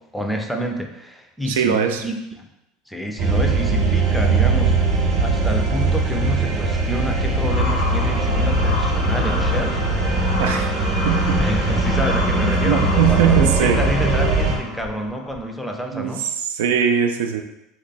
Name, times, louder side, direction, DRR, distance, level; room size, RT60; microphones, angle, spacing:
voice 1, 0.0-2.5 2.9-4.8 5.2-9.8 11.4-16.2, equal, ahead, 3 dB, 0.4 m, -28 dB
voice 2, 1.5-2.0 10.4-10.7 11.0-11.5 12.5-13.8 15.9-17.4, right 9 dB, 90° right, 6 dB, 0.3 m, -21 dB
sound 1, 3.2-14.6, right 3 dB, 50° right, 0.8 m, -20 dB
sound 2, 7.4-15.5, left 3 dB, 90° left, 0.9 m, -30 dB
3.0 x 2.2 x 4.0 m, 0.88 s
supercardioid pair, 115°, 0 cm